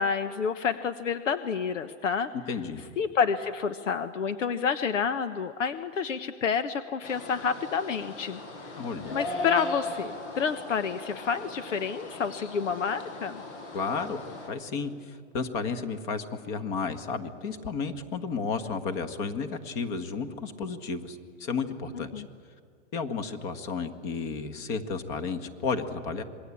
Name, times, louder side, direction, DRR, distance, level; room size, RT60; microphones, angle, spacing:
voice 1, 0.0-2.3 3.0-8.8 9.1-13.4 21.9-22.3, left 6 dB, 85° left, 10 dB, 1.2 m, -29 dB
voice 2, 2.5-2.8 8.8-9.2 13.7-14.2 14.5-22.2 22.9-26.2, left 5 dB, 35° left, 9 dB, 1.7 m, -32 dB
sound 1, 7.0-14.5, left 2 dB, 70° left, 7.7 m, -38 dB
27.0 x 21.5 x 8.6 m, 2.2 s
hypercardioid pair, 150°, 36 cm